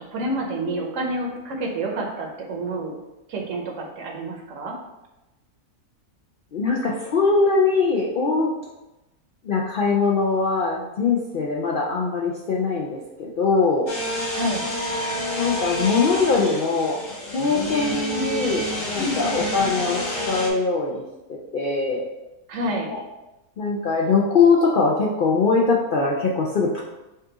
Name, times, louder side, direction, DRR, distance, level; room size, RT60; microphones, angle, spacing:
voice 1, 0.1-3.0 3.3-4.7 14.3-14.6 17.7-17.8 19.0-19.5 22.5-22.9, right 1 dB, 60° right, 0 dB, 1.1 m, -28 dB
voice 2, 6.5-8.5 9.4-13.9 15.4-17.0 17.3-20.0 20.3-21.0 21.5-22.0 22.9-23.0 23.6-26.8, left 4 dB, 80° left, -3 dB, 0.4 m, -21 dB
sound 1, 13.9-20.5, left 1 dB, 35° left, 0.6 m, -29 dB
5.4 x 2.4 x 3.8 m, 1.0 s
omnidirectional pair, 1.6 m